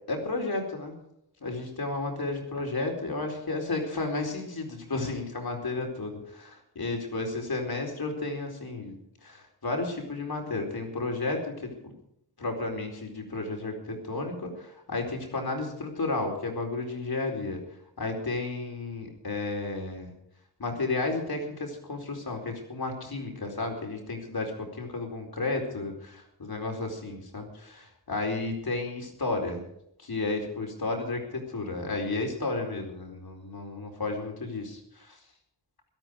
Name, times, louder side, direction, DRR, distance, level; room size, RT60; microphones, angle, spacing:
voice 1, 0.1-0.9 1.4-9.0 9.2-11.9 12.4-17.6 18.0-20.1 20.6-29.6 30.0-35.2, left 3 dB, 60° left, 2 dB, 4.4 m, -32 dB
18.0 x 12.5 x 5.2 m, 0.76 s
wide cardioid pair, 85°, 42 cm